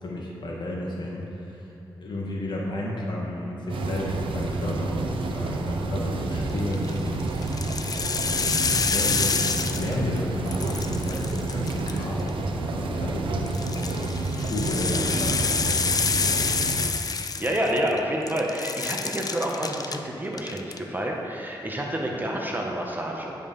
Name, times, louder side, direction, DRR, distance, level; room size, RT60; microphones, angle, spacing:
voice 1, 0.0-1.6 2.0-7.2 8.5-9.3 9.8-15.4, left 1 dB, 60° left, -3 dB, 1.8 m, -32 dB
sound 1, 3.7-16.9, right 2 dB, 90° right, 0.6 m, -29 dB
sound 2, 6.6-6.9 7.4-10.2 10.5-12.3 13.5-18.0 18.3-20.0 20.3-20.8, left 5 dB, 45° left, 0.5 m, -27 dB
voice 2, 17.4-23.4, right 1 dB, 20° right, -1 dB, 1.3 m, -28 dB
9.3 x 5.6 x 5.4 m, 2.7 s
cardioid pair, 70°, 9 cm